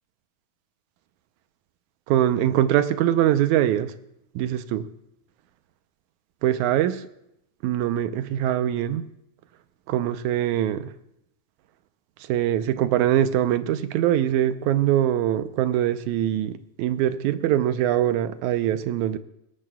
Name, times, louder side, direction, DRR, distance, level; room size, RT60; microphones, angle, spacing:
voice 1, 2.1-3.9 4.4-4.8 6.4-7.0 7.6-9.1 9.9-10.9 12.2-19.2, right 11 dB, 90° right, 11 dB, 2.1 m, -23 dB
21.0 x 17.5 x 2.3 m, 0.80 s
omnidirectional pair, 3.4 m